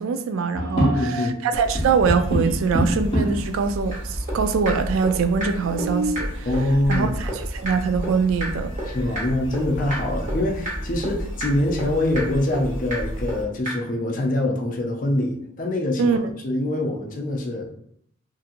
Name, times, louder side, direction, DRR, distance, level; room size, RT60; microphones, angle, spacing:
voice 1, 0.0-6.5 6.9-9.0 16.0-16.2, right 5 dB, 80° right, 9 dB, 0.3 m, -23 dB
sound 1, 0.5-1.4 1.7-3.5 4.3-4.4 4.6-4.7 5.4-6.3 8.0-8.1 8.6-9.1 9.5-9.6 10.2-11.1, right 1 dB, 20° left, 0.8 m, -27 dB
voice 2, 0.7-1.4 6.5-7.2 8.9-16.2 16.4-17.7, left 1 dB, 40° left, 1 dB, 0.4 m, -24 dB
sound 2, 1.5-13.4, equal, 15° right, 1.1 m, -32 dB
sound 3, 3.9-4.0 4.3-4.4 4.6-4.7 5.0-5.1 5.4-5.5 5.8-5.9 6.1-6.2 6.5-6.6 6.9-7.0 7.3-7.4 7.6-7.7 8.0-8.1 8.4-8.5 8.8-8.9 9.1-9.2 9.5-9.6 9.9-10.0 10.3-10.4 10.6-10.7 11.0-11.1 11.4-11.5 11.8-11.9 12.1-12.2 12.5-12.6 12.9-13.0 13.3-13.4 13.6-13.7, right 1 dB, 40° right, 1.1 m, -29 dB
2.7 x 2.6 x 2.5 m, 0.69 s
head